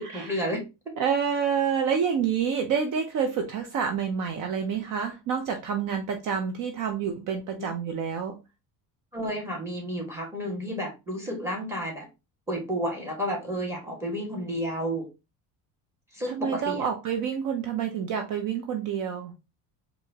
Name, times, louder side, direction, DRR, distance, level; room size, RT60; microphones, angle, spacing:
voice 1, 0.0-0.9 9.1-12.1 12.5-15.1 16.1-16.9, equal, 5° right, 1.7 m, -31 dB
voice 2, 1.0-8.4 16.3-19.3, right 7 dB, 50° right, 0.7 m, -28 dB
4.6 x 2.7 x 2.9 m
cardioid pair, 130°, 42 cm